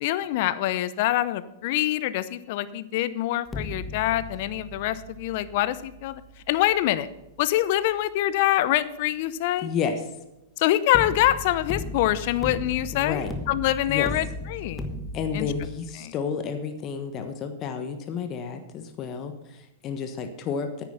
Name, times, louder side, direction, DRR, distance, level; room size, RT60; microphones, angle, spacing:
voice 1, 0.0-6.2 6.5-7.1 7.4-9.7 10.6-14.9 15.3-15.5 16.0-16.1, left 14 dB, 55° left, 15 dB, 0.7 m, -25 dB
sound 1, 3.5-8.5 10.9-15.7, left 2 dB, 15° left, 1.2 m, -37 dB
voice 2, 9.6-10.0 12.9-13.3 13.9-14.1 15.1-20.8, left 6 dB, 35° left, 7 dB, 1.3 m, -31 dB
9.5 x 9.2 x 5.9 m, 0.92 s
hypercardioid pair, 105°, 0 cm